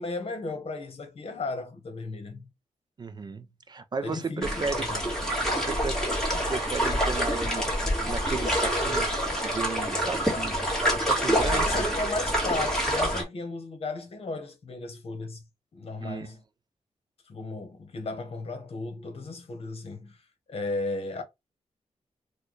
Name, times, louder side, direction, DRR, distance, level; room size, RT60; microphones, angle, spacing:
voice 1, 0.0-2.5 4.0-5.4 11.4-15.4 15.7-16.4 17.3-20.2 20.5-21.2, left 3 dB, 50° left, 1.0 m, -35 dB
voice 2, 3.0-4.9 5.2-6.0 6.5-7.6 8.0-10.6 10.9-11.8 16.0-16.3, right 4 dB, 35° right, 0.3 m, -35 dB
sound 1, 4.4-13.2, equal, 5° left, 1.5 m, -27 dB
4.3 x 2.2 x 3.1 m
wide cardioid pair, 160°, 13 cm